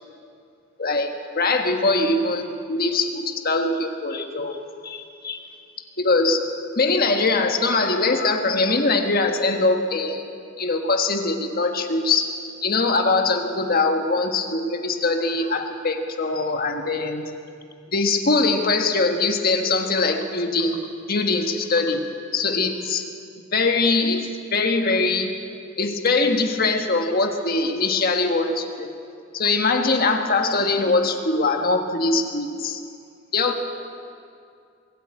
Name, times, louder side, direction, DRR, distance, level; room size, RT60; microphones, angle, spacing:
voice 1, 0.8-4.6 4.8-5.4 6.0-6.4 6.7-10.2 10.6-12.2 12.6-17.3 17.9-20.8 21.1-22.0 22.3-23.0 23.5-25.3 25.8-28.9 29.3-32.8 33.3-33.5, left 3 dB, 50° left, 4 dB, 1.5 m, -22 dB
22.5 x 13.5 x 8.7 m, 2.4 s
head